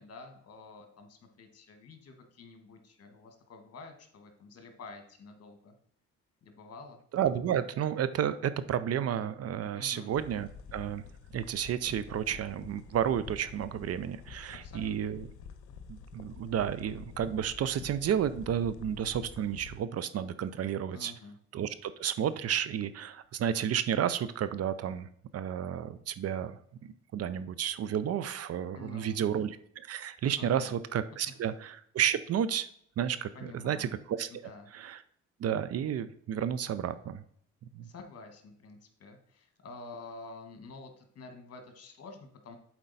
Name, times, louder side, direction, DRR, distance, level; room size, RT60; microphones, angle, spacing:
voice 1, 0.0-5.7 6.4-7.0 9.8-10.1 14.6-15.1 20.9-21.4 28.7-29.3 30.4-30.7 33.3-34.0 34.3-34.7 37.8-42.6, left 3 dB, 55° left, 6 dB, 1.5 m, -49 dB
voice 2, 7.1-11.0 11.3-15.3 15.9-21.1 21.5-32.7 33.0-34.3 34.7-35.0 35.4-37.2 37.7-37.9, right 9 dB, 55° right, 14 dB, 0.5 m, -32 dB
sound 1, 10.1-19.8, left 5 dB, 85° left, 0.7 m, -48 dB
7.5 x 4.5 x 4.1 m, 0.65 s
cardioid pair, 90°, 30 cm